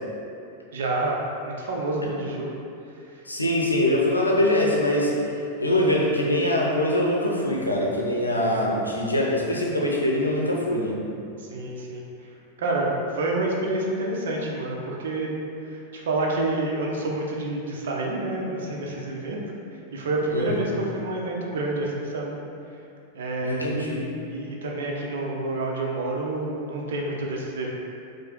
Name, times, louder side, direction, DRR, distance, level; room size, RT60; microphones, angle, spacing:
voice 1, 0.7-2.5 11.4-12.0 12.6-15.4 15.6-19.4 19.9-22.3 23.1-23.8 24.3-27.7, right 2 dB, 60° right, -2 dB, 0.6 m, -28 dB
voice 2, 3.3-5.1 5.6-11.0 20.3-20.6 23.4-24.1, left 1 dB, 85° left, -2 dB, 0.6 m, -23 dB
4.8 x 2.1 x 4.3 m, 2.5 s
figure-of-eight pair, 90°, 0 cm